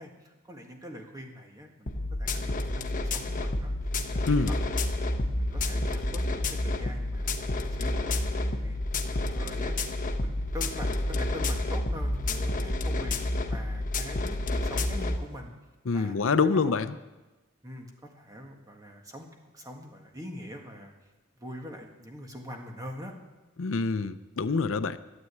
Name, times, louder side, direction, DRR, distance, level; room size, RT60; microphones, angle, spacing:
voice 1, 0.0-1.9 2.2-3.7 4.1-4.5 5.4-7.3 7.6-8.8 9.1-9.8 10.2-13.2 13.5-15.5 15.9-16.8 17.6-19.3 19.5-20.9 21.4-23.1, equal, 15° right, 2 dB, 1.8 m, -43 dB
sound 1, 1.9-15.2, left 2 dB, 40° left, 1.0 m, -29 dB
voice 2, 15.9-17.0 23.6-25.0, left 4 dB, 70° left, 13 dB, 0.6 m, -26 dB
12.5 x 9.1 x 8.5 m, 1.1 s
head